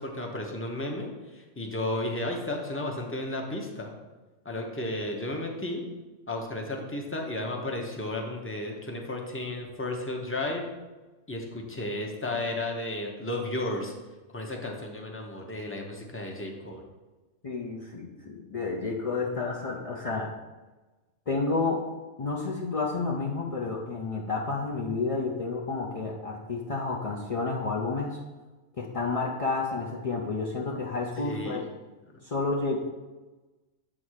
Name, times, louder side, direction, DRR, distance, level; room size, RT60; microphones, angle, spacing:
voice 1, 0.0-3.9 4.4-5.8 6.3-10.6 11.3-13.9 14.3-16.8 31.2-31.7, left 1 dB, 10° left, 1 dB, 0.8 m, -33 dB
voice 2, 17.4-20.3 21.3-21.8 22.2-28.2 28.8-31.6 32.2-32.8, left 3 dB, 45° left, -2 dB, 0.4 m, -30 dB
8.2 x 3.7 x 6.4 m, 1.2 s
omnidirectional pair, 1.5 m